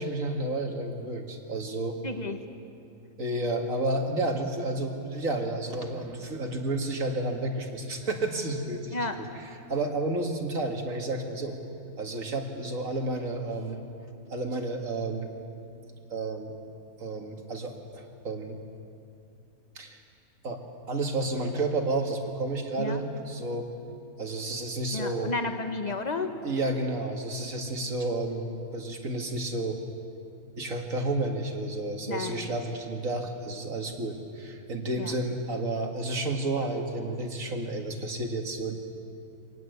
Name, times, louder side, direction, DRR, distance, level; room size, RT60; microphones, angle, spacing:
voice 1, 0.0-2.0 3.2-9.0 9.7-11.6 12.0-13.8 14.3-15.3 16.1-16.5 17.0-18.6 19.8-20.0 20.4-20.6 20.9-23.7 24.2-25.3 26.4-29.8 30.6-38.7, right 2 dB, 75° right, 3 dB, 2.5 m, -31 dB
voice 2, 2.0-2.4 8.9-9.2 22.8-23.0 24.9-26.3 32.1-32.6 34.9-35.2, left 3 dB, 30° left, 6 dB, 1.5 m, -32 dB
24.5 x 18.5 x 8.1 m, 2.6 s
omnidirectional pair, 1.4 m